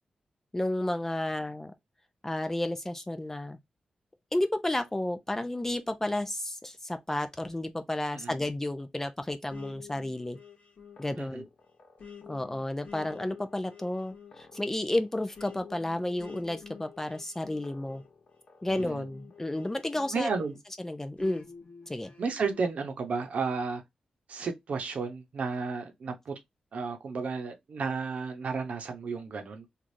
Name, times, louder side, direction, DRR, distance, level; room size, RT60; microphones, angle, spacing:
voice 1, 0.5-1.7 2.2-3.6 4.3-10.4 11.0-11.5 12.3-18.0 18.6-20.3 20.8-21.4 21.9-22.1, left 1 dB, 15° left, 0.5 m, -32 dB
sound 1, 9.5-20.6 21.2-22.7, left 6 dB, 65° left, 1.0 m, -50 dB
voice 2, 20.1-20.6 22.2-23.8 24.3-26.3 26.7-29.8, right 4 dB, 70° right, 0.8 m, -33 dB
3.2 x 2.5 x 2.6 m
cardioid pair, 70°, 2 cm